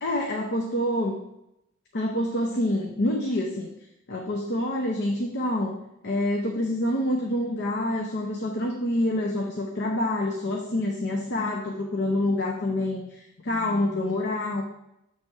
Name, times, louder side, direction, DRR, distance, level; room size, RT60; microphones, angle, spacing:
voice 1, 0.0-1.2 1.9-3.7 4.1-5.7 6.0-14.6, left 1 dB, 50° left, 1 dB, 0.8 m, -27 dB
7.7 x 3.4 x 5.4 m, 0.84 s
head